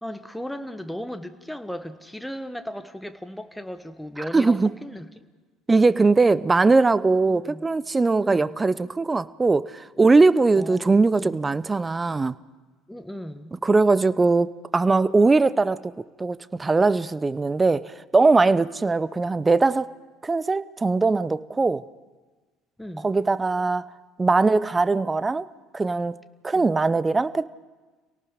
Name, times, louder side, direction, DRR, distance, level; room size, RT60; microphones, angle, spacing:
voice 1, 0.0-5.2 7.3-7.7 8.2-8.6 10.6-11.4 12.9-13.5 22.8-23.1 26.5-26.7, equal, 5° left, 9 dB, 1.4 m, -36 dB
voice 2, 4.3-4.7 5.7-12.3 13.6-15.9 16.2-19.9 20.2-21.8 23.0-23.8 24.2-25.5 25.7-26.1 26.4-27.5, right 3 dB, 20° right, 18 dB, 0.7 m, -20 dB
28.5 x 18.0 x 5.1 m, 1.3 s
hypercardioid pair, 65°, 0 cm